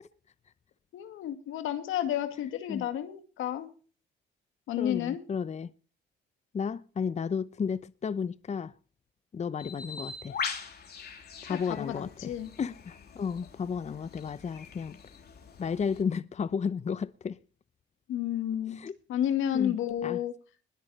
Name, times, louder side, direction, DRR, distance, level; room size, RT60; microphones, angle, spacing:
voice 1, 0.9-3.7 4.7-5.2 11.4-12.5 18.1-18.8 19.1-20.3, left 10 dB, 85° left, 2.3 m, -31 dB
voice 2, 4.8-5.7 6.5-8.7 9.3-10.4 11.4-15.0 15.6-17.4 18.7-18.9 19.5-19.8 20.0-20.2, left 6 dB, 35° left, 0.7 m, -33 dB
Bird, 9.6-16.0, left 5 dB, 55° left, 3.5 m, -42 dB
21.0 x 8.6 x 4.3 m
cardioid pair, 90°, 20 cm